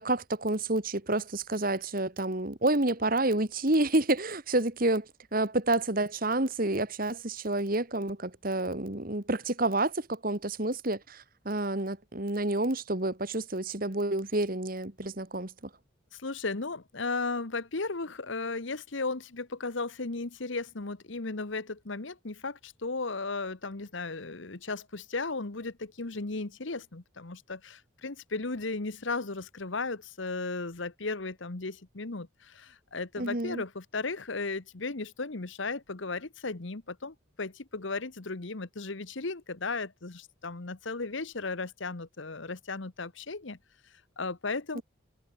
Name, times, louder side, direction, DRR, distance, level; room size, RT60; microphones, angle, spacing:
voice 1, 0.0-15.5 33.2-33.6 44.7-44.8, right 2 dB, 45° right, 2.1 m, -29 dB
voice 2, 16.1-43.6 43.8-44.8, left 3 dB, 65° left, 1.3 m, -35 dB
head